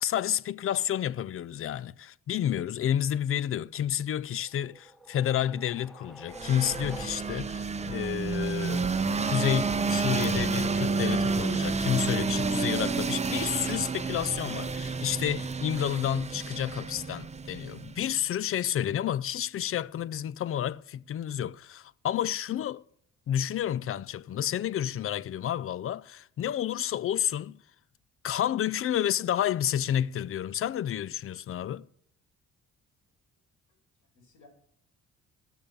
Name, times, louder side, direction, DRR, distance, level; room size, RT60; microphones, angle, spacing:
voice 1, 0.0-8.9 9.2-22.8 23.3-27.6 28.2-31.9, left 10 dB, 45° left, 0.5 m, -30 dB
sound 1, 4.4-7.6, right 2 dB, ahead, 1.1 m, -46 dB
sound 2, 6.3-18.1, right 4 dB, 20° right, 0.6 m, -30 dB
voice 2, 33.7-34.5, left 3 dB, 85° left, 5.2 m, -60 dB
14.0 x 7.0 x 6.9 m
cardioid pair, 90°, 30 cm